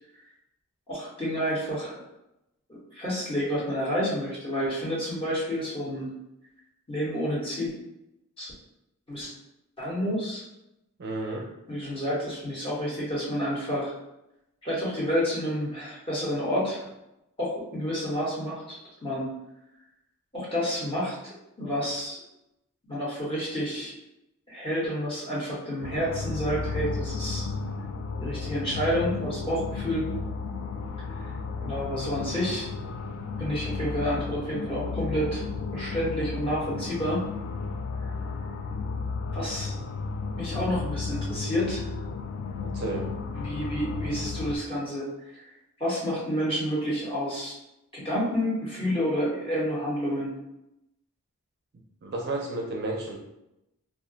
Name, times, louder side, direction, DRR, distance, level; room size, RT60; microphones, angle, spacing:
voice 1, 0.9-2.0 2.7-6.1 6.9-7.7 8.4-8.5 9.1-9.3 9.8-10.4 11.7-13.9 14.6-16.8 17.4-19.2 20.3-22.2 22.9-24.0 24.5-27.5 28.2-30.1 31.6-32.7 33.4-35.4 35.7-37.2 39.3-39.8 40.3-41.9 43.3-45.1 45.3-45.4 45.8-47.5 47.9-50.3, equal, 25° left, -6 dB, 1.0 m, -29 dB
voice 2, 11.0-11.5 42.6-43.1 52.0-53.2, right 2 dB, 45° right, 0 dB, 0.4 m, -32 dB
sound 1, 25.8-44.6, left 4 dB, 65° left, 0.3 m, -33 dB
2.4 x 2.1 x 3.8 m, 0.87 s
head